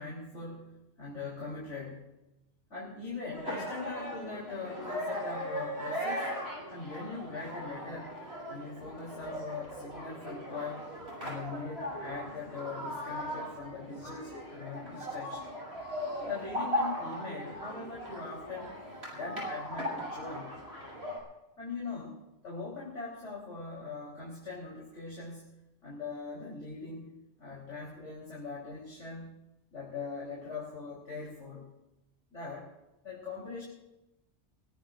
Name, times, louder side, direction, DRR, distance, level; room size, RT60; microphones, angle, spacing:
voice 1, 0.0-2.2 2.7-6.4 6.7-8.2 8.5-10.9 11.2-15.6 16.2-18.8 19.1-20.6 21.6-25.5 25.8-27.1 27.4-29.4 29.7-31.7 32.3-32.7 33.0-33.6, left 4 dB, 85° left, -4 dB, 4.1 m, -41 dB
sound 1, 3.3-21.2, equal, 60° right, 7.9 m, -38 dB
23.5 x 19.5 x 2.5 m, 0.94 s
omnidirectional pair, 1.2 m